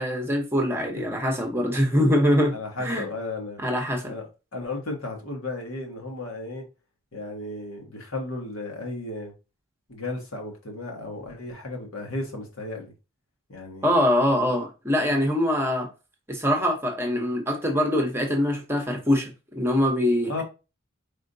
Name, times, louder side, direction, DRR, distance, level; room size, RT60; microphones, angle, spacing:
voice 1, 0.0-3.0 3.6-4.1 13.8-15.9 16.3-20.4, left 1 dB, 10° right, 0.9 m, -23 dB
voice 2, 2.5-3.6 4.0-6.7 7.1-9.3 9.9-12.9 13.5-14.0 20.2-20.4, left 2 dB, 75° left, 1.5 m, -34 dB
4.9 x 3.6 x 2.7 m
head